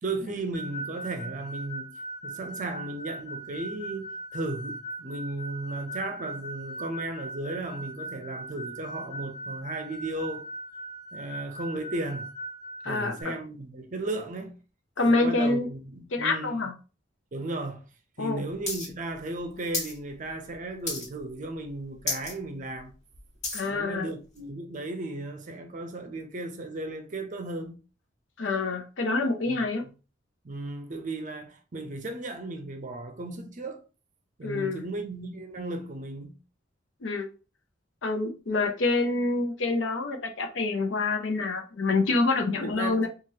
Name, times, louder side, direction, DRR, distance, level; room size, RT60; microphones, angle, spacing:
voice 1, 0.0-1.9 2.2-10.5 11.1-12.3 12.8-14.6 15.0-16.6 17.3-17.9 18.2-22.9 23.7-27.8 29.5-29.7 30.4-33.8 34.4-36.4 42.6-43.1, right 2 dB, 45° right, 0.6 m, -35 dB
sound 1, 0.5-13.2, right 1 dB, ahead, 0.9 m, -39 dB
voice 2, 12.8-13.3 15.0-15.7 16.1-16.7 18.2-18.4 23.5-24.1 28.4-29.9 34.4-34.9 37.0-37.3 38.0-43.1, left 3 dB, 90° left, 0.6 m, -26 dB
sound 2, 18.7-18.9 19.1-20.0 20.3-20.5 20.9-21.3 21.7-21.8 22.0-22.3 22.8-23.7 24.4-24.5, left 3 dB, 40° left, 1.5 m, -32 dB
3.1 x 2.4 x 2.8 m
head